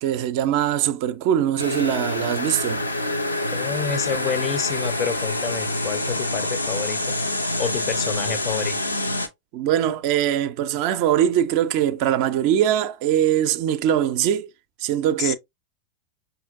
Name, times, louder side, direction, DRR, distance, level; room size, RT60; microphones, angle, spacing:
voice 1, 0.0-2.8 9.5-14.5 14.8-15.4, right 10 dB, 45° right, 0.4 m, -22 dB
sound 1, 1.6-9.3, left 1 dB, 85° left, 0.6 m, -26 dB
voice 2, 3.5-7.0 7.6-8.8 15.2-15.4, left 7 dB, 30° left, 0.5 m, -28 dB
5.5 x 2.6 x 2.4 m
figure-of-eight pair, 90°, 0 cm